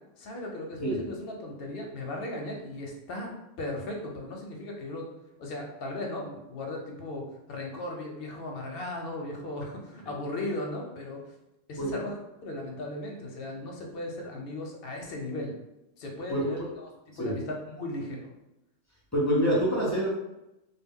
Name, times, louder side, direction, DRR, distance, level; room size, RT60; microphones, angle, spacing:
voice 1, 0.2-3.3 3.6-5.1 5.4-11.2 11.7-12.1 12.4-15.5 16.0-16.9 17.2-18.3, left 1 dB, 60° left, 0 dB, 0.7 m, -37 dB
voice 2, 16.3-16.7 17.1-17.3 19.1-20.1, equal, 25° left, -6 dB, 0.4 m, -26 dB
2.2 x 2.1 x 3.5 m, 0.91 s
omnidirectional pair, 1.2 m